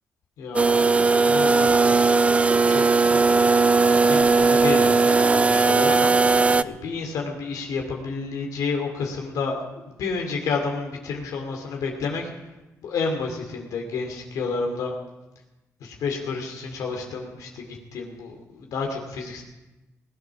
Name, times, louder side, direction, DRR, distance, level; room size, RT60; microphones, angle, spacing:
voice 1, 0.4-1.9 2.7-2.8 3.4-12.3 12.8-14.9 15.8-19.4, left 4 dB, 90° left, 1 dB, 2.6 m, -30 dB
sound 1, 0.5-6.6, right 4 dB, 20° right, 0.4 m, -18 dB
19.5 x 9.1 x 6.2 m, 1.0 s
cardioid pair, 110°, 6 cm